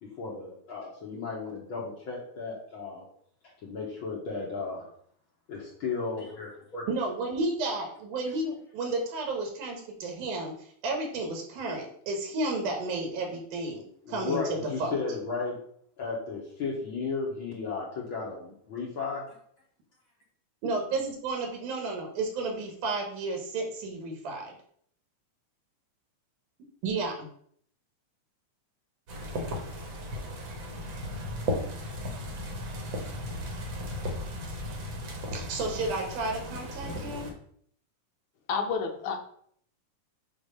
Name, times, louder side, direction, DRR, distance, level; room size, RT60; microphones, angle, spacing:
voice 1, 0.0-3.0 3.6-4.9 5.5-6.9 14.0-15.6 16.0-19.4, left 4 dB, 55° left, -3 dB, 1.6 m, -34 dB
voice 2, 6.9-10.5 10.8-14.9 20.6-24.5 26.8-27.3 35.3-37.3, right 2 dB, 85° right, 2 dB, 2.9 m, -32 dB
sound 1, 29.1-37.3, left 1 dB, 55° right, 1.5 m, -36 dB
voice 3, 38.5-39.2, left 5 dB, 75° left, 4 dB, 1.3 m, -29 dB
8.2 x 2.8 x 5.2 m, 0.63 s
omnidirectional pair, 3.5 m